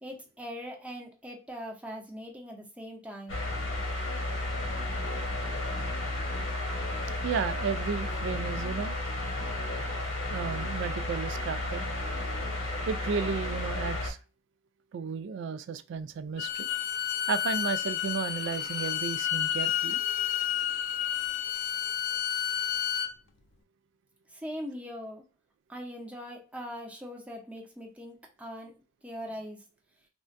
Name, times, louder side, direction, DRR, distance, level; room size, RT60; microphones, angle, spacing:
voice 1, 0.0-3.3 24.3-25.2 25.7-28.7 29.0-29.6, equal, 5° right, 0.7 m, -41 dB
sound 1, 3.3-14.1, left 2 dB, 90° left, 1.0 m, -33 dB
voice 2, 7.2-9.0 10.3-11.9 12.9-14.2 14.9-16.7 17.3-20.0, right 6 dB, 65° right, 0.3 m, -33 dB
Bowed string instrument, 16.4-23.1, left 10 dB, 60° left, 0.4 m, -30 dB
3.5 x 2.2 x 2.5 m
head